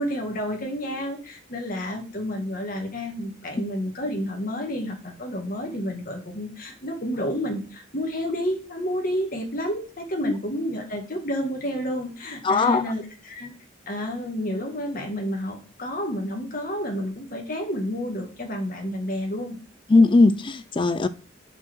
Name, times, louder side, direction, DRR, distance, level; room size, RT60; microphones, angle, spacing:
voice 1, 0.0-13.5 13.9-19.6, equal, 45° left, 1.8 m, -30 dB
voice 2, 12.4-12.8 19.9-21.1, left 3 dB, 25° left, 0.4 m, -18 dB
5.7 x 4.6 x 6.1 m
head